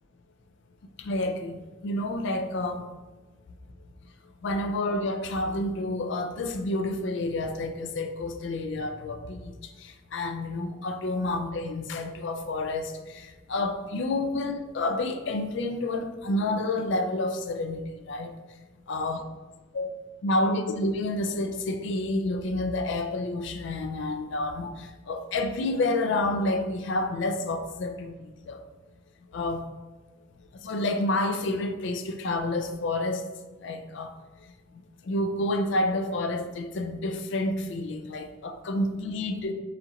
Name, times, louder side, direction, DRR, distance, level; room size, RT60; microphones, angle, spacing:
voice 1, 1.0-2.9 4.4-18.4 18.9-19.2 19.7-19.9 20.2-28.1 28.5-28.6 29.3-29.7 30.5-33.3 33.6-34.1 35.0-39.5, left 2 dB, 60° left, 7 dB, 0.4 m, -29 dB
4.2 x 2.4 x 3.9 m, 1.2 s
head